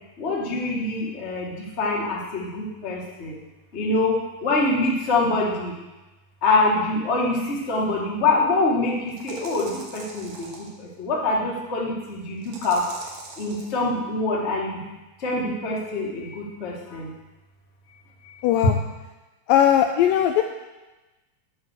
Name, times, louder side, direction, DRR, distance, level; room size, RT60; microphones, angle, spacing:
voice 1, 0.2-3.4 3.7-5.7 6.4-12.8 13.4-14.9 15.2-17.1 18.2-18.4, left 2 dB, 40° left, -4 dB, 1.0 m, -25 dB
sound 1, 7.8-7.9 9.1-10.7 12.4-13.7, right 3 dB, 65° right, 2.8 m, -41 dB
voice 2, 18.4-18.8 19.5-20.4, left 10 dB, 80° left, 4 dB, 2.0 m, -18 dB
8.7 x 5.9 x 6.7 m, 1.1 s
omnidirectional pair, 4.3 m